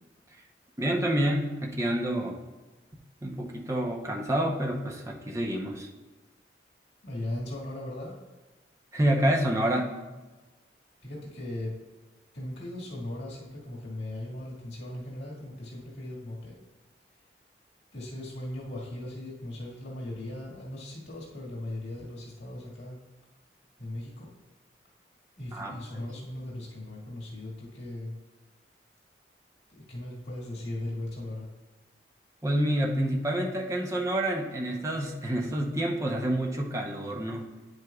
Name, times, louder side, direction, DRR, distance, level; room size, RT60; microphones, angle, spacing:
voice 1, 0.8-2.4 3.2-5.9 8.9-9.9 25.5-26.0 32.4-37.5, right 1 dB, 15° right, 0 dB, 0.8 m, -28 dB
voice 2, 7.0-8.2 11.0-11.7 12.3-16.6 17.9-23.0 23.8-24.3 25.4-28.1 29.7-31.5, left 1 dB, 85° left, -5 dB, 1.9 m, -38 dB
9.4 x 7.7 x 2.4 m, 1.2 s
head